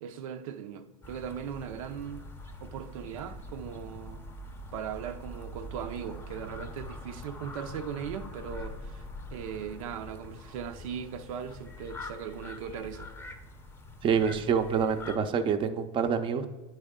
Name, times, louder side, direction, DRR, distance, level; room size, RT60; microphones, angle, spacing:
voice 1, 0.0-2.2 2.6-4.3 4.7-9.1 9.3-13.1, right 8 dB, 80° right, 0.5 m, -39 dB
sound 1, 1.0-15.2, left 1 dB, 15° left, 0.7 m, -44 dB
voice 2, 14.0-16.5, right 6 dB, 30° right, 0.6 m, -27 dB
9.4 x 4.2 x 3.7 m
supercardioid pair, 115°, 17 cm